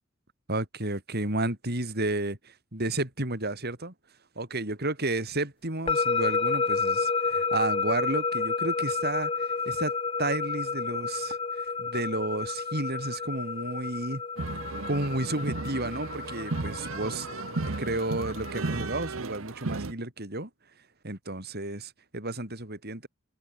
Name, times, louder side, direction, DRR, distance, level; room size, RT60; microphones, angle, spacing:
voice 1, 0.5-3.9 4.3-11.4 11.8-14.2 14.9-17.3 17.8-20.5 21.0-23.1, right 2 dB, 50° right, 5.1 m, -32 dB
sound 1, 5.9-18.9, left 4 dB, 25° left, 0.8 m, -31 dB
sound 2, 14.4-19.9, right 3 dB, 65° right, 1.0 m, -34 dB
head